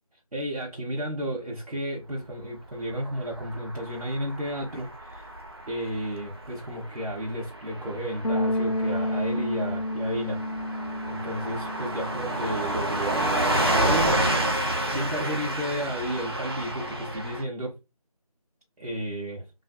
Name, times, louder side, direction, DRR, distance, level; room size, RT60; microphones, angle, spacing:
voice 1, 0.3-5.3 5.7-10.4 11.1-14.5 14.9-17.8 18.8-19.4, right 1 dB, 80° right, 1.0 m, -32 dB
Car passing by / Truck, 3.1-17.4, right 1 dB, 40° right, 0.7 m, -30 dB
Bass guitar, 8.2-14.5, left 1 dB, 80° left, 0.6 m, -31 dB
3.3 x 2.7 x 2.2 m
figure-of-eight pair, 175°, 20 cm